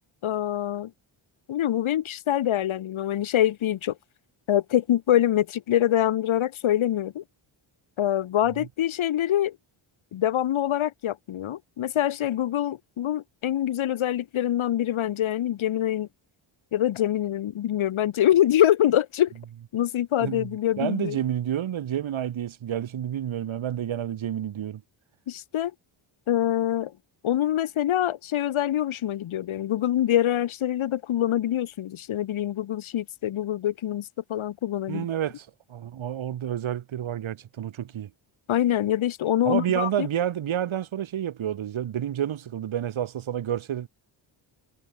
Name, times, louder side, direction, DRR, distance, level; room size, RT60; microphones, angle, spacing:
voice 1, 0.2-0.9 1.5-3.9 4.5-7.2 8.0-9.6 10.1-16.1 16.7-19.3 19.7-21.2 25.3-25.7 26.3-26.9 27.2-35.1 38.5-40.1, left 11 dB, 70° left, 1.7 m, -25 dB
voice 2, 20.8-24.8 34.9-38.1 39.4-43.9, right 10 dB, 70° right, 2.9 m, -29 dB
cardioid pair, 80°, 49 cm